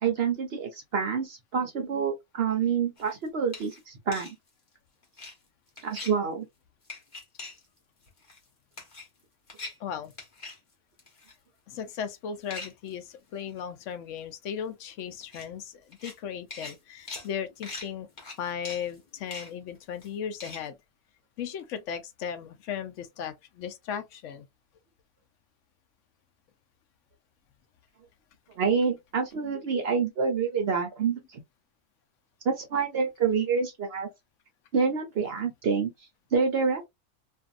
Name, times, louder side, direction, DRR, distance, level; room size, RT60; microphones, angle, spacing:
voice 1, 0.0-4.4 5.8-6.5 28.6-31.4 32.4-34.1 34.7-35.9 36.3-36.9, right 6 dB, 60° right, 0.7 m, -27 dB
sound 1, 3.0-3.1 3.5-3.8 4.1-4.3 5.0-5.4 5.8-6.1 6.9-7.6 8.0-8.4 8.7-9.2 9.5-9.8 10.0-10.6 11.0-11.3 12.5-12.9 13.5-13.6 13.9-14.0 14.2-14.3 15.2-15.5 15.9-16.2 16.5-20.7, left 3 dB, 35° left, 1.1 m, -42 dB
voice 2, 9.8-10.1 11.7-18.1 18.4-20.8 21.4-24.5, left 8 dB, 65° left, 0.8 m, -36 dB
2.6 x 2.6 x 2.4 m
omnidirectional pair, 1.6 m